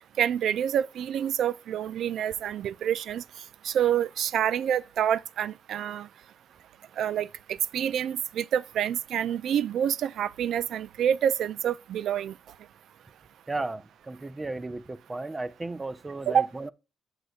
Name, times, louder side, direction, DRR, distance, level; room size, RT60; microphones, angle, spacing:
voice 1, 0.2-3.2 3.6-6.1 7.0-12.3 16.3-16.5, right 9 dB, 70° right, 0.3 m, -27 dB
voice 2, 13.5-16.7, right 2 dB, 20° right, 0.5 m, -35 dB
7.9 x 6.4 x 2.4 m
cardioid pair, 90°, 0 cm